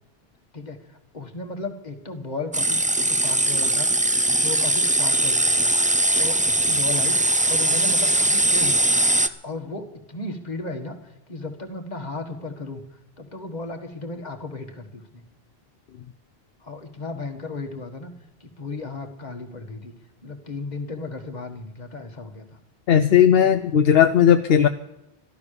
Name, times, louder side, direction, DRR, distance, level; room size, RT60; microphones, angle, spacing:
voice 1, 0.5-3.9 4.3-5.7 6.2-12.8 13.2-15.2 16.6-18.1 18.4-19.9 20.2-22.4, left 3 dB, 45° left, 4 dB, 1.8 m, -35 dB
sound 1, 2.5-9.3, right 2 dB, 10° right, 0.4 m, -20 dB
voice 2, 22.9-24.7, left 9 dB, 70° left, 9 dB, 0.9 m, -16 dB
13.5 x 12.0 x 6.8 m, 0.94 s
omnidirectional pair, 1.1 m